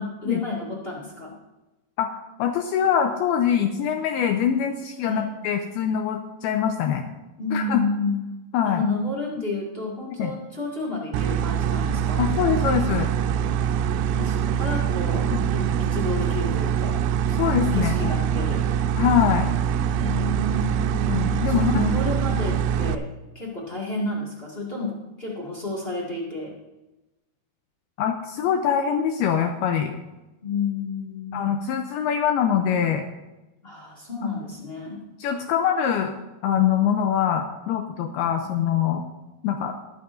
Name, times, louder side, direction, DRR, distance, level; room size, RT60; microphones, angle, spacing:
voice 1, 0.0-1.3 5.0-5.3 7.4-8.2 8.6-12.2 14.1-15.3 15.5-17.0 17.7-18.6 19.9-20.8 21.5-23.0 23.3-26.5 30.4-31.5 33.6-35.0 38.4-38.6, left 3 dB, 65° left, -5 dB, 0.5 m, -30 dB
voice 2, 2.4-7.0 7.5-7.8 8.5-8.8 10.2-10.3 12.2-13.1 15.3-15.5 17.3-18.2 19.0-19.5 21.1-21.9 28.0-29.9 31.3-33.0 34.2-34.3 35.2-36.1 36.4-39.0 39.4-39.8, left 8 dB, 85° left, 5 dB, 2.3 m, -23 dB
sound 1, 11.1-22.9, right 8 dB, 85° right, 2.6 m, -24 dB
21.0 x 9.1 x 2.6 m, 1.0 s
omnidirectional pair, 5.0 m